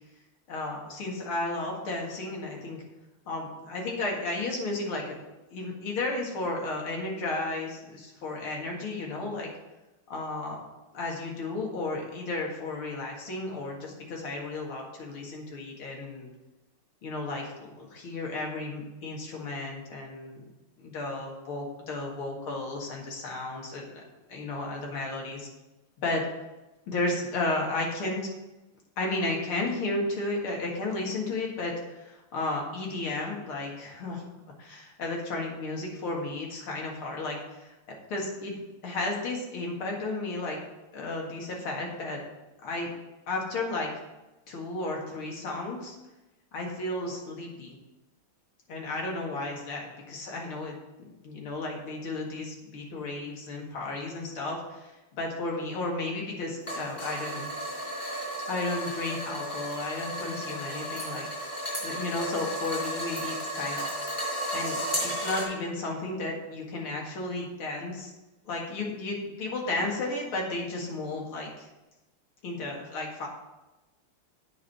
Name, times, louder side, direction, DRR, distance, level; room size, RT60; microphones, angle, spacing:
voice 1, 0.5-2.8 3.3-5.2 5.5-9.5 10.1-10.6 10.9-16.3 17.0-20.4 20.8-24.0 24.3-25.5 26.0-26.3 26.9-28.2 29.0-34.2 34.6-37.7 38.1-40.6 40.9-42.2 42.6-42.9 43.3-43.9 44.5-46.0 46.5-47.8 48.7-50.8 51.2-57.5 58.5-63.9 64.5-68.1 68.4-71.7 72.4-73.3, left 2 dB, 75° left, -1 dB, 2.7 m, -33 dB
sound 1, 56.6-65.4, equal, 20° left, 4.2 m, -34 dB
8.5 x 6.4 x 5.8 m, 1.1 s
omnidirectional pair, 2.4 m